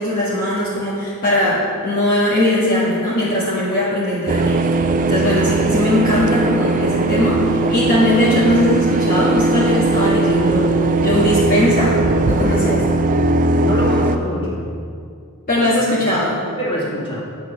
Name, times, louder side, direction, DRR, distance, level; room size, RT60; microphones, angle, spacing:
voice 1, 0.0-12.0 12.3-12.8 15.5-16.5, left 1 dB, 40° left, -8 dB, 1.7 m, -19 dB
sound 1, 4.3-14.2, right 2 dB, 35° right, 0.5 m, -18 dB
voice 2, 13.6-14.6 15.5-15.7 16.1-16.2 16.6-17.2, left 1 dB, 25° left, -5 dB, 2.5 m, -24 dB
9.3 x 7.1 x 6.0 m, 2.4 s
head